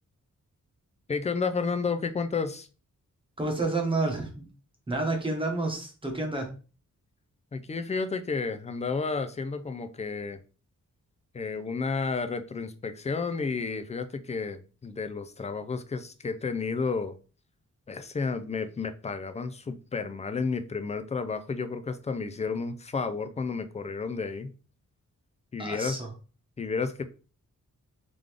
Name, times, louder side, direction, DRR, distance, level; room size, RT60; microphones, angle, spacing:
voice 1, 1.1-2.7 7.5-10.4 11.3-17.2 17.9-24.5 25.5-26.0 26.6-27.0, left 4 dB, 20° left, 9 dB, 0.4 m, -31 dB
voice 2, 3.4-4.4 4.9-6.5 25.6-26.1, right 2 dB, 15° right, 1 dB, 1.1 m, -29 dB
3.7 x 3.6 x 3.3 m, 0.35 s
wide cardioid pair, 145°, 31 cm